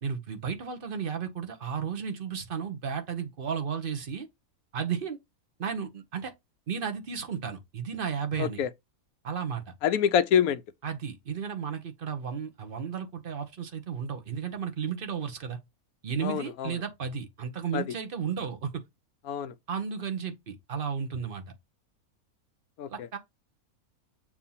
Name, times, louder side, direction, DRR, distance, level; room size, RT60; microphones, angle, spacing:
voice 1, 0.0-4.3 4.7-5.2 5.6-6.3 6.7-8.6 9.2-9.7 10.8-15.6 16.0-18.8 19.7-21.4 22.9-23.2, right 7 dB, 40° right, 1.2 m, -33 dB
voice 2, 8.4-8.7 9.8-10.6 16.2-16.7 17.7-17.8 19.3-19.5 22.8-23.1, left 8 dB, 80° left, 1.1 m, -26 dB
7.1 x 2.9 x 5.6 m
omnidirectional pair, 1.5 m